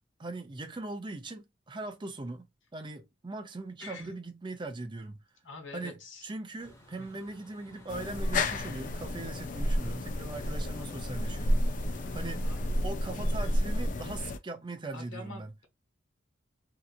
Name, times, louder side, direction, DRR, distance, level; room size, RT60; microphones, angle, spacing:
voice 1, 0.2-2.5 2.7-5.2 5.7-11.7 12.1-12.5 12.8-15.5, right 2 dB, 25° right, 0.5 m, -40 dB
voice 2, 3.8-4.1 5.4-6.3 7.0-7.1 12.4-12.6 13.7-13.9 14.9-15.6, left 3 dB, 75° left, 1.4 m, -46 dB
Truck, 6.6-12.8, left 1 dB, 15° left, 0.9 m, -54 dB
sound 1, 7.9-14.4, left 1 dB, 40° left, 0.4 m, -31 dB
2.8 x 2.4 x 2.3 m
head